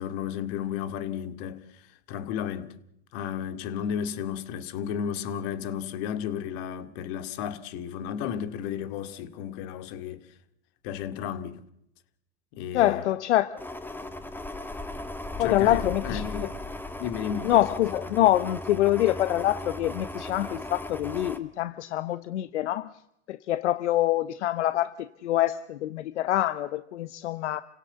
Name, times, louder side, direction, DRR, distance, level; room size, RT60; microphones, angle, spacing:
voice 1, 0.0-1.8 2.1-2.8 3.1-10.3 10.8-11.6 12.5-13.1 15.3-16.5 17.0-17.5, left 8 dB, 60° left, 2.4 m, -33 dB
voice 2, 12.7-13.6 15.4-16.5 17.4-22.9 23.3-27.6, left 13 dB, 85° left, 1.0 m, -25 dB
My Poor Ailing Fan, 13.6-21.4, left 1 dB, 5° left, 2.1 m, -37 dB
29.5 x 17.0 x 8.1 m
hypercardioid pair, 105°, 34 cm